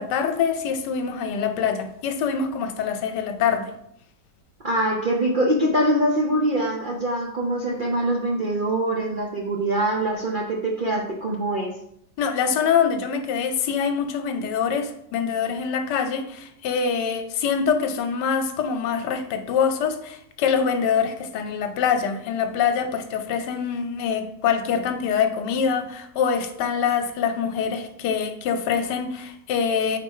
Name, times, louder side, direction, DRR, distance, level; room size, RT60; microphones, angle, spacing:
voice 1, 0.0-3.7 12.2-30.0, left 7 dB, 85° left, 7 dB, 1.4 m, -24 dB
voice 2, 4.6-11.7, right 1 dB, 50° right, -2 dB, 0.6 m, -23 dB
4.5 x 4.3 x 5.5 m, 0.73 s
omnidirectional pair, 1.8 m